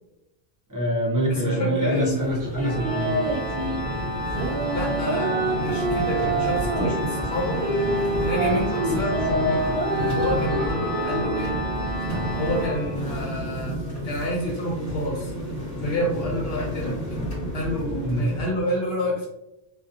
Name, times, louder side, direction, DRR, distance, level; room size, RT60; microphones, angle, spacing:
voice 1, 0.7-3.2 18.0-18.3, right 1 dB, 25° right, -4 dB, 0.5 m, -25 dB
voice 2, 1.3-2.3 4.7-7.6 8.2-11.5 12.4-13.8 14.0-15.3 15.8-17.0 17.5-19.3, left 1 dB, 75° left, -2 dB, 0.8 m, -29 dB
sound 1, 1.4-3.8 4.2-7.0 7.6-11.2, right 2 dB, 50° right, 1.0 m, -27 dB
sound 2, 1.8-18.5, right 1 dB, 15° left, 0.9 m, -31 dB
Organ, 2.6-13.3, equal, 55° left, 1.1 m, -32 dB
2.6 x 2.3 x 2.4 m, 0.90 s
omnidirectional pair, 1.1 m